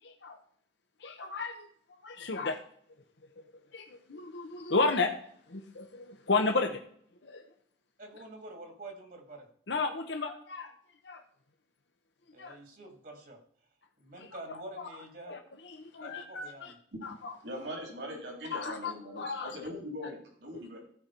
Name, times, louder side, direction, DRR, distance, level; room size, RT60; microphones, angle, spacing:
voice 1, 0.0-0.4 1.0-2.6 3.4-3.5 3.7-5.2 5.5-6.8 7.2-7.4 9.7-10.7 11.0-11.2 12.4-12.6 14.1-14.9 15.3-16.7 17.0-17.4 18.5-19.7, left 3 dB, 75° left, 4 dB, 0.9 m, -33 dB
voice 2, 8.0-9.5 12.3-13.4 14.0-15.4 16.0-16.7, right 2 dB, 50° right, 3 dB, 1.9 m, -47 dB
voice 3, 17.4-20.8, equal, 75° right, -1 dB, 3.4 m, -41 dB
15.5 x 5.3 x 4.4 m, 0.63 s
head